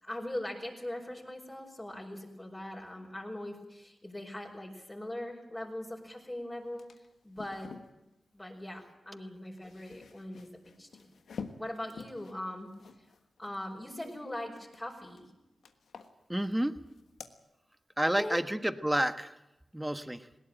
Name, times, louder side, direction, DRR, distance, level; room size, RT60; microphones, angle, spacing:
voice 1, 0.0-6.9 7.2-8.0 8.3-10.5 10.8-10.9 11.6-12.7 13.4-15.3 18.0-18.4, left 1 dB, 20° left, -1 dB, 4.9 m, -41 dB
sound 1, 6.2-6.3 6.6-7.9 9.3-14.2 14.5-15.3 15.6-16.6 16.9-17.3, left 5 dB, 85° left, 1.4 m, -49 dB
voice 2, 16.3-16.7 18.0-19.4 19.7-20.3, right 1 dB, 10° right, 10 dB, 1.4 m, -30 dB
20.0 x 17.5 x 9.1 m, 0.92 s
cardioid pair, 50°, 0 cm